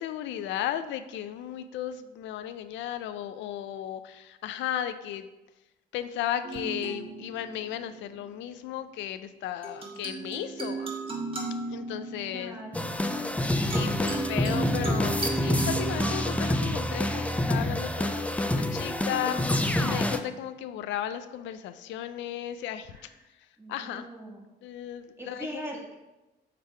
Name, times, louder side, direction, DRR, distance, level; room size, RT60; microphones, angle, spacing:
voice 1, 0.0-5.3 5.9-10.9 11.7-12.6 13.6-22.9 23.7-24.1 24.6-25.6, left 11 dB, 80° left, 10 dB, 0.4 m, -35 dB
sound 1, 6.4-8.2 9.6-18.1, right 3 dB, 30° right, 1.5 m, -36 dB
voice 2, 12.3-12.9 22.9-23.1 23.6-24.4 25.2-25.9, right 1 dB, 15° right, -1 dB, 1.7 m, -41 dB
sound 2, 12.7-20.2, left 1 dB, 5° left, 0.5 m, -27 dB
6.6 x 3.4 x 4.4 m, 1.0 s
supercardioid pair, 75°, 19 cm